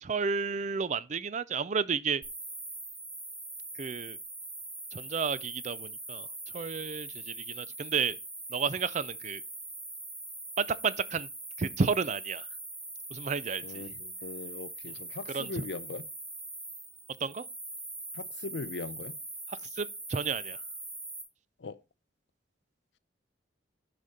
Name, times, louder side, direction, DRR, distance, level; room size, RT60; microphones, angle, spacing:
voice 1, 0.0-2.2 3.8-4.2 4.9-6.3 6.5-8.2 8.5-9.4 10.6-11.3 11.6-12.5 13.1-13.8 15.3-15.7 17.2-17.4 19.5-20.6, right 5 dB, 40° right, 0.4 m, -32 dB
sound 1, 2.2-21.2, right 2 dB, 15° right, 2.0 m, -42 dB
voice 2, 13.6-16.0 18.1-19.1 21.6-21.8, left 3 dB, 70° left, 0.6 m, -40 dB
10.0 x 5.1 x 4.2 m
head